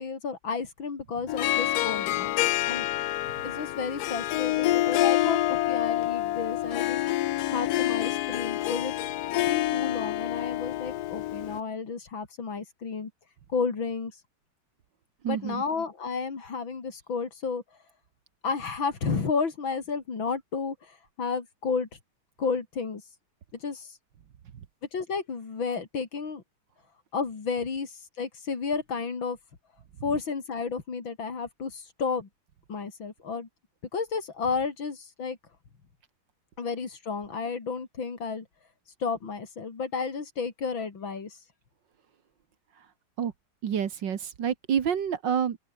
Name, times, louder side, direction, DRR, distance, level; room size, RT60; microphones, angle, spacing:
voice 1, 0.0-2.4 2.7-2.9 3.4-7.0 7.5-8.9 9.5-13.1 13.5-14.1 15.3-17.6 18.4-21.9 22.4-23.0 23.6-23.9 24.9-26.4 27.1-27.9 28.2-29.4 30.0-32.3 32.7-33.5 33.9-35.4 36.6-38.5 39.0-41.4, left 5 dB, 65° left, 3.7 m, -32 dB
Harp, 1.3-11.6, left 15 dB, 90° left, 0.8 m, -27 dB
voice 2, 15.2-15.6 42.8-42.9 43.2-43.3 43.6-45.6, right 8 dB, 60° right, 1.9 m, -28 dB
open air
omnidirectional pair, 2.3 m